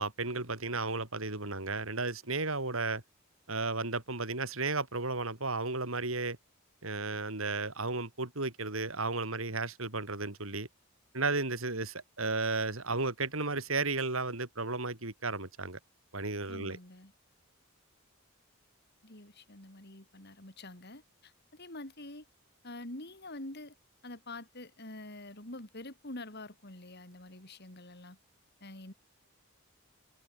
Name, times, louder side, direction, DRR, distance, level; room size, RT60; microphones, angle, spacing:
voice 1, 0.0-3.0 3.5-6.4 6.8-10.7 11.1-15.8 16.1-16.8, right 3 dB, 70° right, 4.1 m, -34 dB
voice 2, 16.5-17.1 19.0-22.2 22.6-23.7 24.0-28.2 28.6-28.9, left 2 dB, 50° left, 4.5 m, -46 dB
head